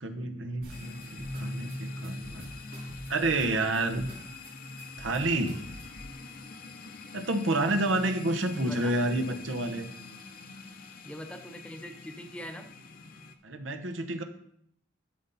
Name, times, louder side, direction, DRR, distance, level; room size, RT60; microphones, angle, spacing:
voice 1, 0.0-2.5 3.1-4.1 5.0-5.6 7.1-9.9 13.4-14.2, right 2 dB, 85° right, 6 dB, 0.9 m, -29 dB
sound 1, 0.6-6.1, equal, 50° right, 3.0 m, -46 dB
sound 2, 0.7-13.3, left 2 dB, 45° left, 0.7 m, -43 dB
voice 2, 8.6-8.9 11.0-12.7, equal, 5° left, 5 dB, 0.7 m, -42 dB
12.0 x 5.6 x 4.1 m, 0.69 s
head